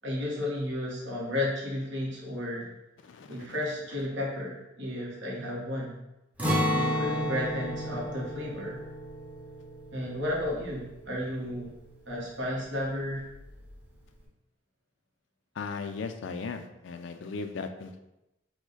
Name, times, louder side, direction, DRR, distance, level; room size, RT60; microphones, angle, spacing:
voice 1, 0.0-2.7 3.3-6.0 6.7-8.8 9.9-11.7 12.1-13.2, left 1 dB, 65° right, -4 dB, 1.2 m, -33 dB
voice 2, 3.0-3.6 15.5-18.0, left 4 dB, 70° left, 8 dB, 0.4 m, -37 dB
Acoustic guitar, 6.4-12.3 12.6-12.8 13.3-13.7, equal, 10° right, 0.7 m, -33 dB
4.7 x 2.2 x 3.9 m, 0.93 s
head